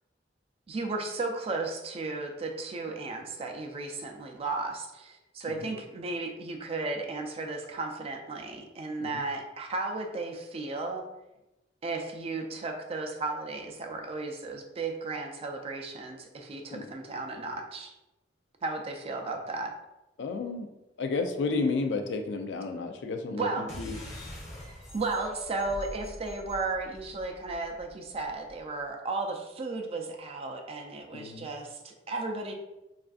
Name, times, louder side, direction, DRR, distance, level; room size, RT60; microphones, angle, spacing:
voice 1, 0.7-11.1 11.8-17.9 18.6-19.7 23.4-23.7 24.9-32.5, right 3 dB, 35° right, 3 dB, 0.3 m, -34 dB
voice 2, 20.2-20.7 21.0-24.0 31.1-31.5, left 3 dB, 70° left, 6 dB, 0.3 m, -32 dB
sound 1, 23.7-28.6, left 1 dB, 40° left, 0.7 m, -44 dB
3.3 x 2.4 x 2.3 m, 0.97 s
head